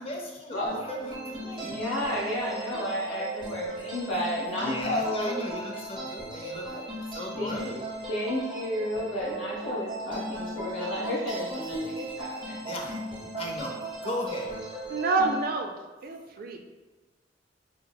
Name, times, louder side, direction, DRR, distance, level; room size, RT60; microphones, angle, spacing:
voice 1, 0.0-1.9 4.6-6.8 7.1-7.9 12.6-14.6, left 1 dB, 30° left, 1 dB, 0.5 m, -37 dB
sound 1, 0.7-15.4, right 1 dB, 30° right, 0.8 m, -37 dB
voice 2, 1.6-5.4 6.7-6.8 7.4-7.6 8.1-12.6, equal, 85° left, -5 dB, 1.0 m, -31 dB
voice 3, 14.9-15.7 16.0-16.6, right 3 dB, 50° right, 4 dB, 0.4 m, -27 dB
5.5 x 2.0 x 2.2 m, 1.3 s
head